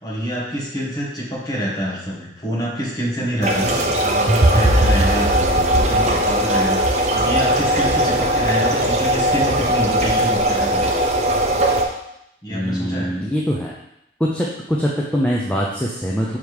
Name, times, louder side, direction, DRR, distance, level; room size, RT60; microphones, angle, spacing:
voice 1, 0.0-5.4 5.7-6.8 7.1-11.0 12.4-13.1, equal, 25° left, -5 dB, 1.5 m, -26 dB
sound 1, 3.4-11.8, right 1 dB, 40° right, 0.6 m, -18 dB
voice 2, 5.3-6.2 12.5-13.7 14.2-16.4, equal, 5° left, -4 dB, 0.5 m, -23 dB
5.8 x 3.5 x 4.8 m, 0.81 s
head